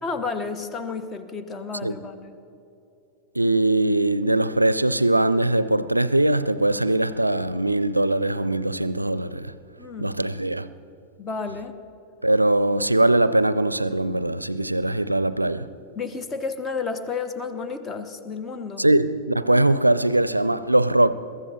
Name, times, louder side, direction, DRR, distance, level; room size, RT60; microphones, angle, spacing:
voice 1, 0.0-2.3 9.8-10.2 11.2-11.8 15.9-18.8, left 4 dB, 20° left, 1.1 m, -31 dB
voice 2, 3.4-9.5 10.0-10.7 12.2-15.7 18.8-21.1, right 1 dB, 85° right, 0.4 m, -21 dB
22.5 x 14.0 x 4.3 m
figure-of-eight pair, 90°, 0 cm